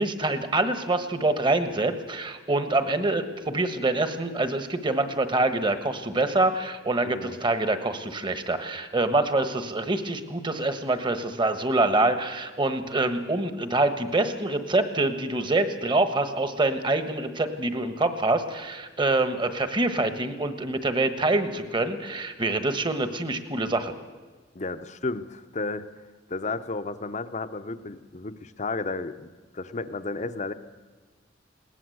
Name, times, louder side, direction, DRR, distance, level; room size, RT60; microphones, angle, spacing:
voice 1, 0.0-23.9, right 2 dB, 25° right, 9 dB, 1.3 m, -25 dB
voice 2, 7.0-7.4 24.5-25.9 26.3-30.5, left 3 dB, 35° left, 12 dB, 0.8 m, -33 dB
21.0 x 18.0 x 7.9 m, 1.4 s
head